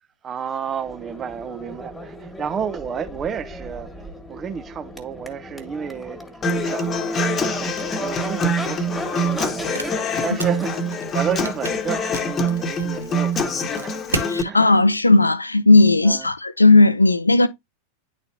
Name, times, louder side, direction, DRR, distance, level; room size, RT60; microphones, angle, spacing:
voice 1, 0.2-3.9 4.3-6.9 7.3-14.0 14.4-14.8 16.0-16.3, right 7 dB, 25° right, 0.6 m, -31 dB
Crowd / Race car auto racing / Accelerating revving vroom, 0.7-14.5, equal, 5° left, 1.7 m, -38 dB
Human voice / Acoustic guitar, 6.4-14.4, equal, 25° left, 1.1 m, -24 dB
sound 1, 7.7-14.4, right 4 dB, 75° right, 0.8 m, -36 dB
voice 2, 14.3-17.5, left 2 dB, 85° left, 0.5 m, -15 dB
10.5 x 4.1 x 2.8 m
figure-of-eight pair, 90°, 0 cm